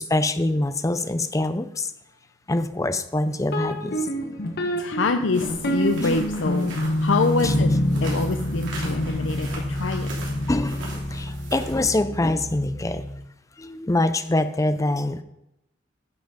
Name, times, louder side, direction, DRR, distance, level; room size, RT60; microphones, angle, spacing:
voice 1, 0.0-1.9 2.5-4.0 6.7-6.8 7.4-7.5 9.4-9.6 10.5-13.0 13.6-15.2, left 2 dB, 15° left, 11 dB, 0.5 m, -25 dB
sound 1, 3.5-13.3, left 1 dB, 55° left, 1.3 m, -27 dB
voice 2, 4.8-7.7 8.0-10.1, left 3 dB, 80° left, 8 dB, 0.6 m, -25 dB
sound 2, 5.3-11.8, right 2 dB, 70° right, 3.1 m, -39 dB
10.5 x 5.9 x 5.0 m, 0.86 s
head